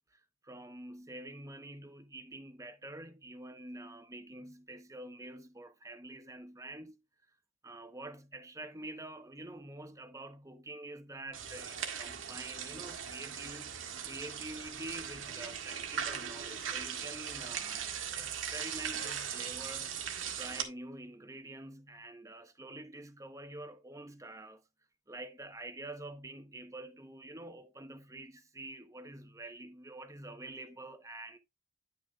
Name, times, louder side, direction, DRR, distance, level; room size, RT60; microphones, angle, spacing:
voice 1, 0.1-7.0 7.6-13.8 14.0-17.9 18.1-20.0 20.3-24.6 25.1-31.4, right 2 dB, 15° right, 0.9 m, -47 dB
sound 1, 11.3-20.6, right 8 dB, 85° right, 1.7 m, -39 dB
10.0 x 6.2 x 2.3 m
head